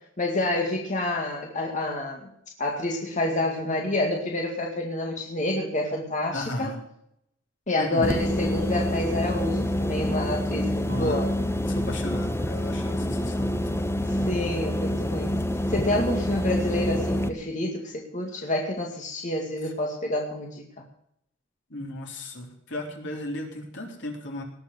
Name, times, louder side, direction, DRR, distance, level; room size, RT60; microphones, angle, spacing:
voice 1, 0.2-2.3 2.6-6.8 7.7-11.3 14.0-15.4 15.7-20.7, left 1 dB, 40° left, 0 dB, 2.2 m, -28 dB
voice 2, 6.3-6.8 7.8-8.1 10.9-11.2 11.7-13.9 21.7-24.4, left 1 dB, 70° left, 1 dB, 3.9 m, -35 dB
sound 1, 8.0-17.3, left 1 dB, 15° left, 1.1 m, -27 dB
19.0 x 7.3 x 7.8 m, 0.73 s
head